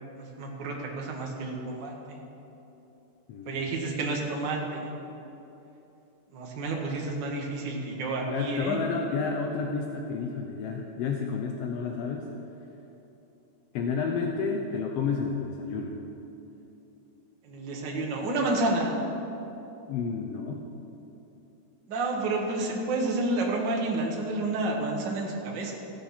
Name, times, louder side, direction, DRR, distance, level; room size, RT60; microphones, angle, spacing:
voice 1, 0.1-2.2 3.4-4.9 6.3-8.8 17.4-18.9 21.9-25.7, right 2 dB, 45° right, -1 dB, 1.7 m, -30 dB
voice 2, 3.3-3.7 8.3-12.3 13.7-15.9 19.9-20.6, left 5 dB, 80° left, 2 dB, 1.4 m, -30 dB
15.5 x 7.2 x 5.8 m, 3.0 s
omnidirectional pair, 3.6 m